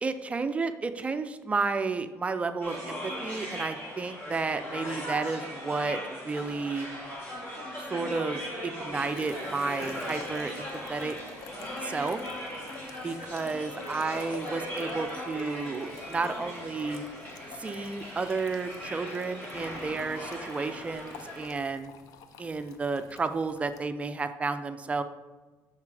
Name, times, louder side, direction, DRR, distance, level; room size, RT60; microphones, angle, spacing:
voice 1, 0.0-6.9 7.8-11.2 11.8-12.2 13.0-17.1 17.5-21.9 22.4-25.0, right 4 dB, 20° right, 9 dB, 0.4 m, -32 dB
sound 1, 2.6-21.5, equal, 40° left, 2.1 m, -39 dB
sound 2, 8.9-23.8, left 7 dB, 75° left, 0.5 m, -50 dB
sound 3, 13.3-16.3, left 1 dB, 20° left, 1.0 m, -53 dB
7.2 x 5.8 x 3.3 m, 1.2 s
cardioid pair, 130°, 6 cm